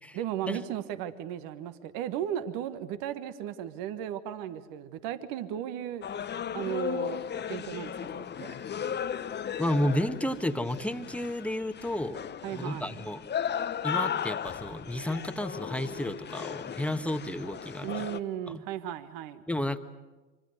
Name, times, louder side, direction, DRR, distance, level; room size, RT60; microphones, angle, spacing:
voice 1, 0.1-6.0 6.5-7.2 7.5-8.5 12.4-13.0 17.8-19.4, right 10 dB, 60° right, 12 dB, 1.5 m, -35 dB
sound 1, 6.0-18.2, left 8 dB, 25° left, 0.9 m, -36 dB
voice 2, 9.6-12.2 12.5-13.2 13.8-18.1 18.5-18.6 19.5-19.8, left 1 dB, 5° left, 9 dB, 1.4 m, -32 dB
25.5 x 25.5 x 6.7 m, 1.2 s
hypercardioid pair, 70°, 39 cm